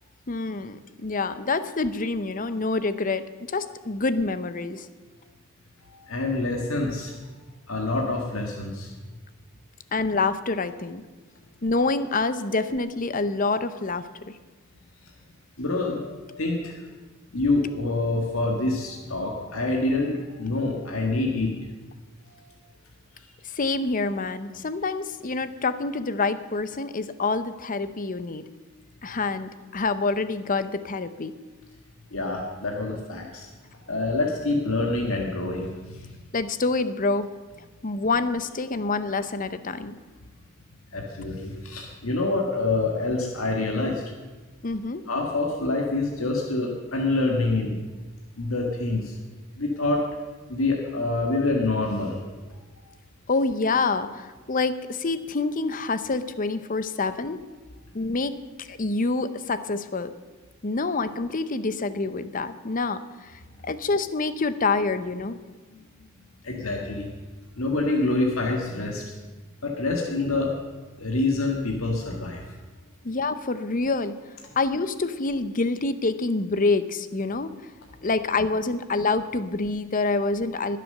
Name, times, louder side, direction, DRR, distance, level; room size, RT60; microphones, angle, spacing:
voice 1, 0.3-4.9 9.9-11.0 11.6-14.4 23.4-28.4 29.0-31.3 36.3-37.3 37.8-39.9 44.6-45.0 53.3-57.4 57.9-58.3 58.6-60.1 60.6-65.4 73.0-74.1 74.6-77.5 78.0-80.8, left 3 dB, 40° left, 12 dB, 0.8 m, -27 dB
voice 2, 5.9-7.1 7.7-8.9 15.6-16.9 17.3-21.5 32.1-33.5 33.9-36.2 40.9-44.0 45.1-47.8 48.4-49.1 49.6-50.1 50.5-52.2 66.4-67.1 67.6-69.2 69.6-70.5 71.0-72.4, left 2 dB, 85° left, 0 dB, 1.8 m, -26 dB
20.0 x 7.6 x 6.6 m, 1.3 s
head